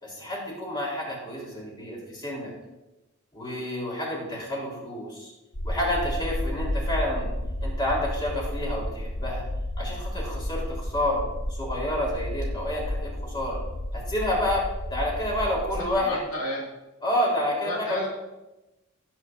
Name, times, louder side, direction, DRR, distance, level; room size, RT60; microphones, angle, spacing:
voice 1, 0.0-2.5 3.3-5.3 5.6-7.3 7.6-9.4 9.8-11.2 11.6-13.6 13.9-14.6 14.9-16.2 17.0-18.1, left 1 dB, 20° left, -4 dB, 3.8 m, -29 dB
sound 1, 5.5-16.0, left 1 dB, 55° left, 2.4 m, -32 dB
voice 2, 15.8-16.7 17.6-18.1, left 1 dB, 70° left, -4 dB, 2.3 m, -32 dB
17.5 x 7.9 x 2.7 m, 1.0 s
head